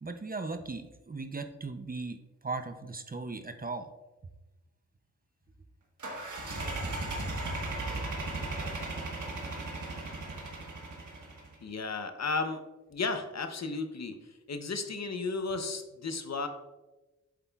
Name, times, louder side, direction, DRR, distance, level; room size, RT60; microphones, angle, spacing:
voice 1, 0.0-2.2 2.4-3.9, right 3 dB, 30° right, 8 dB, 0.5 m, -37 dB
sound 1, 6.0-11.5, right 2 dB, 85° right, 1.4 m, -36 dB
voice 2, 11.6-12.6 12.9-14.2 14.5-16.5, left 4 dB, 65° left, 7 dB, 0.8 m, -34 dB
8.3 x 7.2 x 2.3 m, 1.1 s
wide cardioid pair, 90°, 29 cm